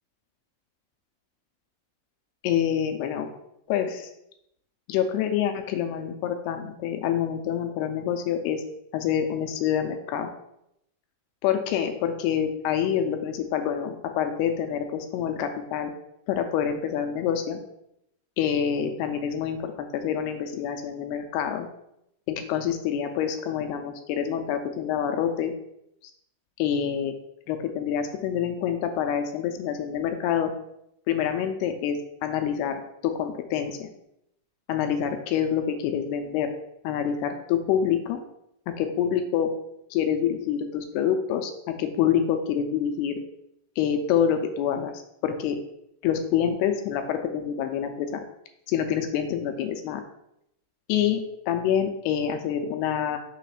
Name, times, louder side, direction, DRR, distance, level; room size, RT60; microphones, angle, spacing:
voice 1, 2.4-3.3 3.7-4.1 4.9-8.6 8.9-10.3 11.4-15.9 16.3-17.6 18.4-21.7 22.3-25.5 26.6-27.2 27.5-30.5 31.1-33.9 34.7-36.5 36.8-38.2 38.7-39.5 39.9-43.2 43.8-45.6 46.0-48.2 48.7-50.0 50.9-53.2, left 9 dB, 85° left, 6 dB, 2.3 m, -26 dB
6.6 x 3.0 x 5.7 m, 0.80 s
omnidirectional pair, 5.0 m